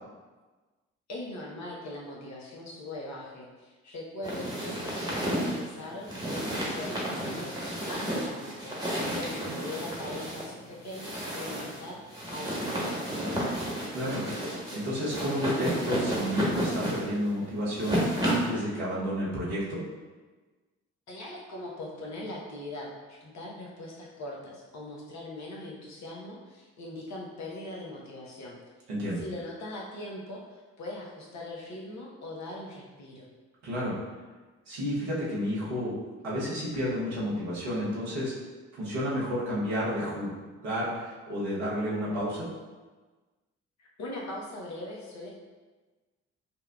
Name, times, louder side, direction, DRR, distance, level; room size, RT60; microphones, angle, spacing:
voice 1, 1.1-8.7 9.1-13.7 21.1-28.6 29.2-33.3 43.8-45.3, left 1 dB, 50° left, -3 dB, 0.9 m, -41 dB
sound 1, 4.2-18.6, right 1 dB, 10° right, 1.2 m, -32 dB
voice 2, 13.9-14.2 14.7-19.8 28.9-29.2 33.6-34.0 34.7-35.9 36.2-38.3 38.7-42.5, equal, 80° right, -7 dB, 1.0 m, -31 dB
5.3 x 2.2 x 2.3 m, 1.3 s
figure-of-eight pair, 40°, 36 cm